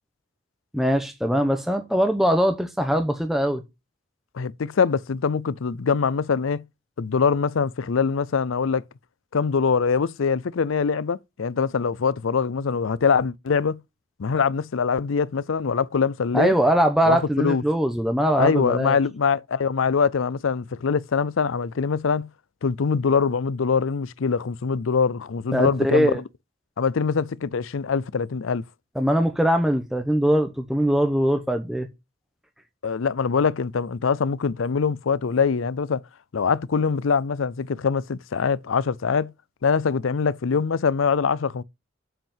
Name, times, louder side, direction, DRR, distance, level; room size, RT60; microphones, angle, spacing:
voice 1, 0.7-3.6 16.3-19.0 25.5-26.2 29.0-31.9, equal, ahead, 0.9 m, -21 dB
voice 2, 4.3-6.6 7.0-8.8 9.3-13.8 14.2-16.5 17.0-17.6 18.4-22.3 22.6-26.2 26.8-28.6 32.8-36.0 36.3-39.3 39.6-41.6, left 5 dB, 80° left, 0.5 m, -23 dB
7.4 x 5.7 x 7.3 m
head